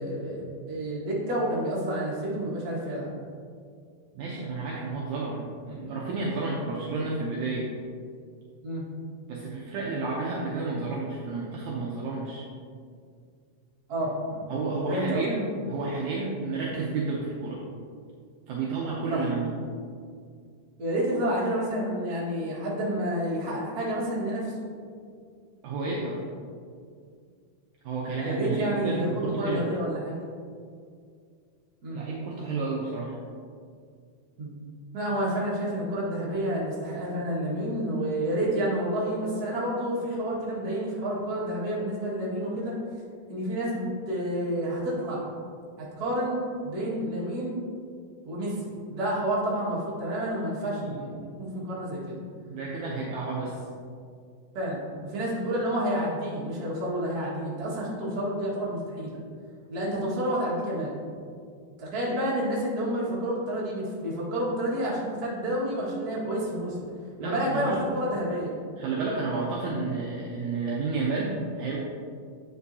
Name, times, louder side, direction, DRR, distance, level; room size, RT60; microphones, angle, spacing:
voice 1, 0.0-3.1 8.6-8.8 13.9-14.5 14.9-15.3 19.1-19.3 20.8-24.6 28.2-30.2 31.8-32.0 34.4-34.5 34.9-42.8 43.3-45.3 46.0-47.6 48.2-52.2 52.9-53.3 54.5-59.2 59.7-61.0 61.8-66.8 67.2-68.6, right 1 dB, 40° right, -7 dB, 1.3 m, -29 dB
voice 2, 4.1-7.7 9.3-12.4 14.0-14.1 14.5-17.6 18.5-19.5 25.6-26.2 27.8-29.7 31.9-33.2 50.7-51.0 52.4-53.6 67.2-67.8 68.8-71.8, right 3 dB, 85° right, -4 dB, 1.6 m, -31 dB
9.5 x 5.6 x 2.7 m, 2.2 s
omnidirectional pair, 4.4 m